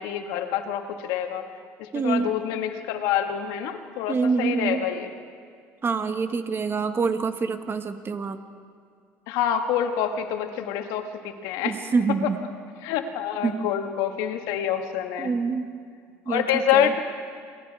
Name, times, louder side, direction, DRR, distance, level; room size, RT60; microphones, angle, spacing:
voice 1, 0.0-1.5 1.8-5.1 9.3-11.7 12.8-15.3 16.3-17.0, left 9 dB, 75° left, 5 dB, 1.8 m, -26 dB
voice 2, 1.9-2.3 4.1-4.8 5.8-8.4 11.6-12.4 13.4-13.7 15.2-15.7 16.3-16.9, right 5 dB, 35° right, 8 dB, 1.7 m, -26 dB
28.5 x 19.0 x 4.8 m, 2.1 s
supercardioid pair, 80°, 7 cm